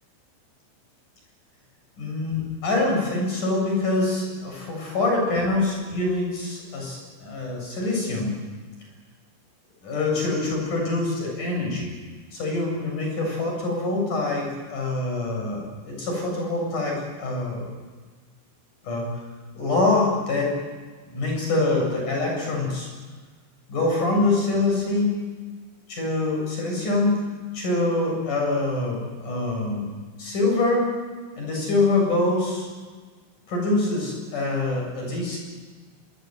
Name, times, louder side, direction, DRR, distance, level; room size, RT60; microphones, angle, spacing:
voice 1, 2.0-8.3 9.8-11.9 12.3-17.7 18.8-19.1 19.6-20.5 21.1-22.9 23.7-25.2 25.9-27.2 27.5-29.9 30.2-30.9 31.4-32.7 33.5-35.4, left 2 dB, 45° left, 0 dB, 9.2 m, -25 dB
25.5 x 24.0 x 8.0 m, 1.4 s
omnidirectional pair, 5.2 m